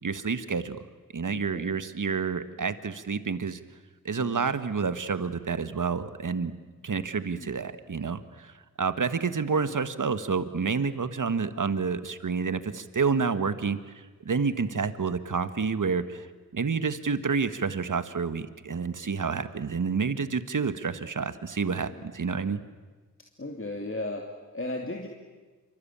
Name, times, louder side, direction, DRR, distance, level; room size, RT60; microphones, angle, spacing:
voice 1, 0.0-0.8 1.1-3.6 4.0-6.5 6.8-16.3 16.5-22.6, right 5 dB, 65° right, 12 dB, 1.5 m, -29 dB
voice 2, 1.3-1.8 4.2-4.5 7.4-7.5 9.7-9.8 19.2-19.6 21.9-22.1 23.4-25.1, left 2 dB, 40° left, 2 dB, 3.0 m, -37 dB
26.5 x 24.5 x 8.8 m, 1.3 s
cardioid pair, 40°, 33 cm